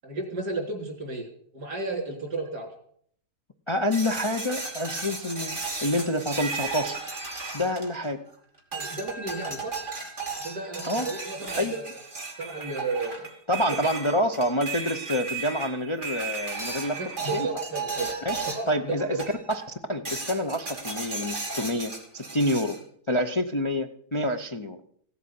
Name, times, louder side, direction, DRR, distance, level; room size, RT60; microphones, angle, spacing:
voice 1, 0.0-1.3 1.5-2.7 8.7-9.8 10.3-12.0 12.4-13.3 13.7-13.9 16.9-18.1 18.5-19.2, right 3 dB, 80° right, 3 dB, 3.8 m, -33 dB
voice 2, 3.7-7.0 7.5-8.2 10.9-11.1 11.6-11.7 13.5-17.0 17.3-17.5 18.2-22.8 23.1-24.8, left 1 dB, 30° left, 5 dB, 0.6 m, -27 dB
sound 1, 3.9-8.3 8.7-18.8 19.2-19.7 20.0-22.8, right 3 dB, 30° right, 3.0 m, -35 dB
16.0 x 8.2 x 8.3 m, 0.63 s
omnidirectional pair, 1.7 m